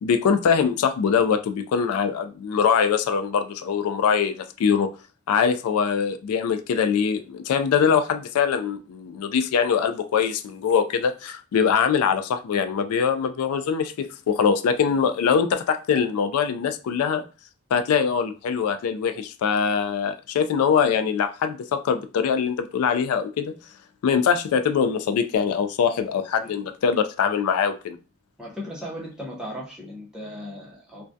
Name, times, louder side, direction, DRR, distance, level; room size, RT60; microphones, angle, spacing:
voice 1, 0.0-4.9 5.3-17.2 17.7-23.5 24.0-28.0, left 6 dB, 85° left, 0.3 m, -23 dB
voice 2, 28.4-31.0, equal, 5° right, 0.6 m, -37 dB
2.3 x 2.1 x 2.5 m
head